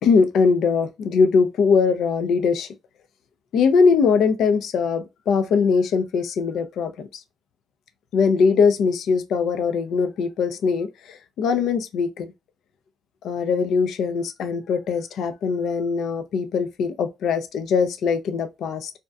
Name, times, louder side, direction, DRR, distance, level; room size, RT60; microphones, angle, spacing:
voice 1, 0.0-2.7 3.5-7.1 8.1-12.3 13.2-18.9, left 5 dB, 75° left, 0.4 m, -21 dB
2.6 x 2.2 x 2.3 m
cardioid pair, 90°, 0 cm